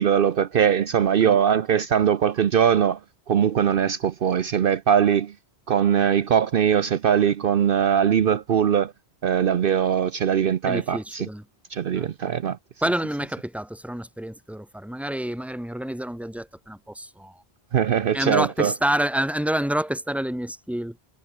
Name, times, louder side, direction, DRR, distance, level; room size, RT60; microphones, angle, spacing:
voice 1, 0.0-3.0 3.3-5.3 5.7-8.9 9.2-11.3 11.7-12.6 17.7-18.7, right 8 dB, 60° right, 0.9 m, -21 dB
voice 2, 10.7-11.4 11.9-12.1 12.8-17.4 18.1-21.0, right 1 dB, ahead, 1.9 m, -28 dB
omnidirectional pair, 1.1 m